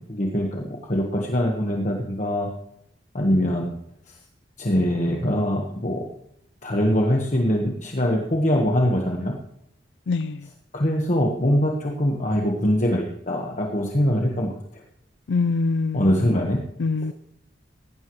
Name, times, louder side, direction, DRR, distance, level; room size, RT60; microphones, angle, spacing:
voice 1, 0.1-2.5 3.1-3.7 4.6-6.0 6.6-9.3 10.7-14.8 15.9-16.6, equal, 40° left, 0 dB, 1.3 m, -23 dB
voice 2, 10.1-10.5 15.3-16.5 16.8-17.1, left 4 dB, 65° left, 12 dB, 0.4 m, -25 dB
18.0 x 15.5 x 3.2 m, 0.77 s
head